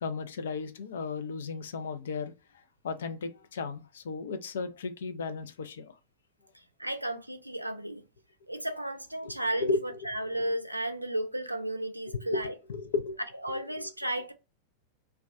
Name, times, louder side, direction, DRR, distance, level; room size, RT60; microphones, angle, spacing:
voice 1, 0.0-2.3 2.8-5.9 9.2-10.0 12.1-13.2 13.5-13.6, left 4 dB, 65° left, 0.4 m, -34 dB
voice 2, 6.8-8.0 8.5-12.5 13.4-14.3, right 1 dB, 90° right, 0.4 m, -33 dB
2.2 x 2.2 x 2.5 m
figure-of-eight pair, 90°, 0 cm